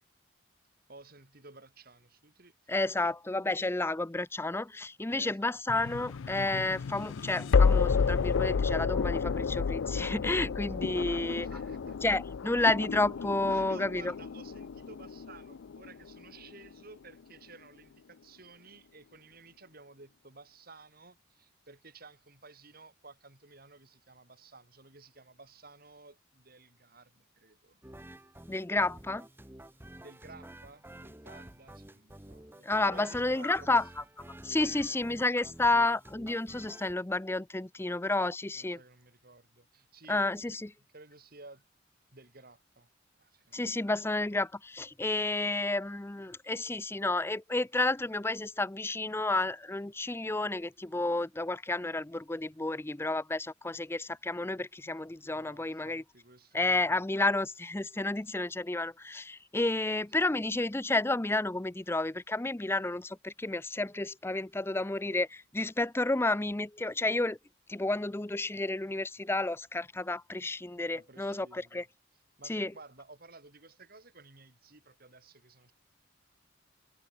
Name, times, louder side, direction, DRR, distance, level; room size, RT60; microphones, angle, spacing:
voice 1, 0.9-2.5 3.7-3.9 5.1-5.8 10.9-11.1 11.4-12.0 12.4-12.6 13.2-27.8 30.0-33.8 34.6-35.5 38.5-40.6 40.9-41.6 42.1-42.9 43.2-43.8 55.2-57.1 59.8-60.0 70.9-71.9 72.4-75.7, right 3 dB, 50° right, 4.1 m, -54 dB
voice 2, 2.7-11.5 12.0-14.1 28.5-29.3 32.6-33.8 34.4-38.8 40.1-40.7 43.5-56.0 56.5-67.4 67.7-71.8 72.5-72.7, left 2 dB, 10° left, 0.5 m, -31 dB
sound 1, 5.7-16.7, left 5 dB, 80° left, 0.5 m, -30 dB
sound 2, 27.8-36.9, right 1 dB, 10° right, 1.3 m, -50 dB
head